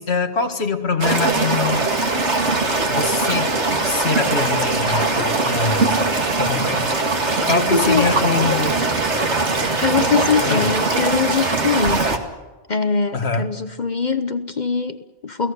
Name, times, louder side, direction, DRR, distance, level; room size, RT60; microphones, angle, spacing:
voice 1, 0.0-1.8 2.9-3.5 3.8-6.0 6.4-6.9 7.2-8.8 10.4-10.7 13.1-13.5, left 4 dB, 70° left, 6 dB, 2.1 m, -24 dB
sound 1, 1.0-12.2, right 3 dB, 85° right, 2.5 m, -21 dB
voice 2, 7.5-8.1 9.8-12.2 12.7-15.5, left 5 dB, 45° left, 10 dB, 1.1 m, -22 dB
29.5 x 18.0 x 6.9 m, 1.2 s
omnidirectional pair, 1.1 m